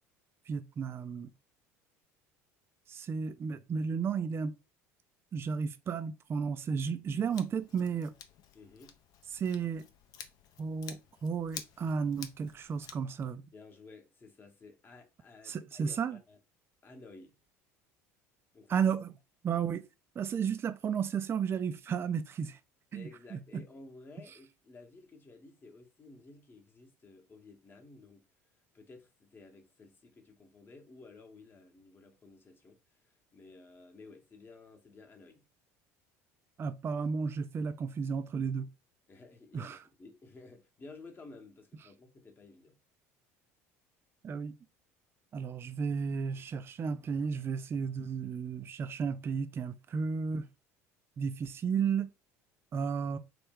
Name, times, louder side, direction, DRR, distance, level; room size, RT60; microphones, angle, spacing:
voice 1, 0.5-1.3 2.9-4.5 5.3-8.1 9.3-9.8 10.6-13.5 15.4-16.2 18.7-19.1 19.4-19.8 20.2-22.6 22.9-23.6 36.6-38.7 39.5-39.8 44.2-44.6 45.3-50.5 51.2-52.1 52.7-53.2, right 6 dB, 30° right, 0.3 m, -33 dB
Scissors, 7.3-12.9, left 8 dB, 55° left, 0.5 m, -50 dB
voice 2, 8.5-9.0 13.5-16.4 16.8-17.4 18.5-18.8 22.9-28.3 28.7-32.8 33.0-35.5 39.1-42.8, left 3 dB, 25° left, 0.9 m, -54 dB
3.2 x 2.2 x 3.3 m
hypercardioid pair, 75°, 8 cm